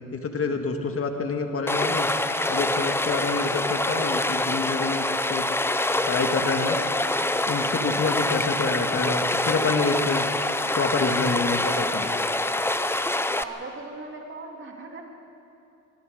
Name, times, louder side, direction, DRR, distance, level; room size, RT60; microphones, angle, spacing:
voice 1, 0.1-2.1 2.5-5.4 6.1-6.8 7.5-10.3 10.7-12.1, left 4 dB, 50° left, 5 dB, 2.0 m, -27 dB
Stream, 1.7-13.4, left 2 dB, 10° left, 0.7 m, -25 dB
voice 2, 13.4-15.0, right 3 dB, 40° right, 1 dB, 3.2 m, -39 dB
23.0 x 23.0 x 5.2 m, 2.7 s
cardioid pair, 90°, 30 cm